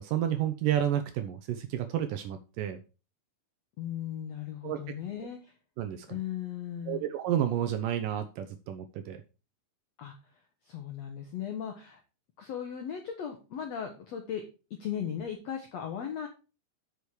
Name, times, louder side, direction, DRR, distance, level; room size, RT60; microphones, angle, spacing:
voice 1, 0.0-2.8 4.6-4.8 5.8-6.1 6.9-9.2, right 10 dB, 75° right, 9 dB, 2.0 m, -30 dB
voice 2, 3.8-5.5 6.1-7.0 10.0-12.0 12.4-14.4 14.7-16.3, left 9 dB, 75° left, 4 dB, 1.5 m, -37 dB
8.2 x 5.9 x 4.7 m, 0.33 s
omnidirectional pair, 4.4 m